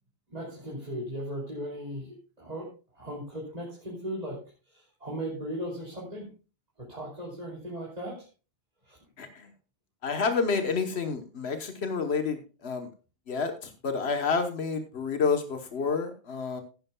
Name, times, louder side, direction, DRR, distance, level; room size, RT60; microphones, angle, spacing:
voice 1, 0.3-2.7 3.0-4.4 4.7-6.3 6.8-8.2 8.9-9.0, equal, 40° right, -3 dB, 3.2 m, -37 dB
voice 2, 9.2-9.5 10.0-12.9 13.3-16.6, left 5 dB, 90° left, 7 dB, 1.4 m, -29 dB
15.5 x 11.0 x 2.3 m, 0.34 s
omnidirectional pair, 1.0 m